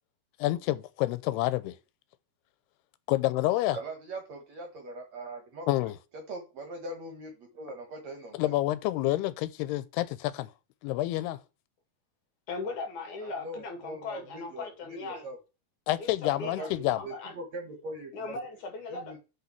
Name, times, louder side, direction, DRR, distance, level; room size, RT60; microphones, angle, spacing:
voice 1, 0.4-1.8 3.1-3.8 5.7-6.0 8.4-10.5 10.8-11.4 15.9-17.0, left 16 dB, 90° left, 2.7 m, -28 dB
voice 2, 3.7-5.7 6.3-8.5 13.2-15.4 16.4-18.3 18.9-19.2, right 1 dB, 60° right, 2.1 m, -41 dB
voice 3, 12.5-15.2 16.0-16.1 16.4-16.7 16.9-17.4 18.1-19.2, left 3 dB, 55° left, 3.2 m, -38 dB
6.9 x 5.5 x 5.9 m
omnidirectional pair, 4.6 m